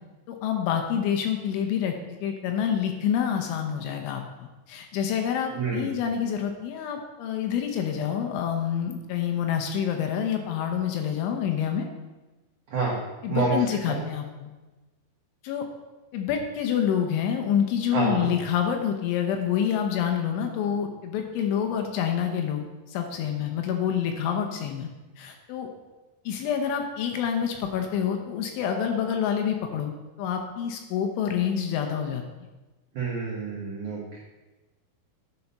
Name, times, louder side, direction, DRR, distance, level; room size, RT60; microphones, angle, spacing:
voice 1, 0.3-1.9 2.2-11.9 13.2-14.5 15.4-15.7 16.1-24.9 25.2-25.7 26.3-29.9 30.2-32.2, left 8 dB, 75° left, 4 dB, 3.0 m, -27 dB
voice 2, 5.5-5.9 12.7-13.0 13.3-13.5 13.9-14.0 17.9-18.3 33.0-34.2, right 4 dB, 75° right, -5 dB, 1.8 m, -28 dB
10.5 x 5.4 x 5.4 m, 1.2 s
omnidirectional pair, 5.9 m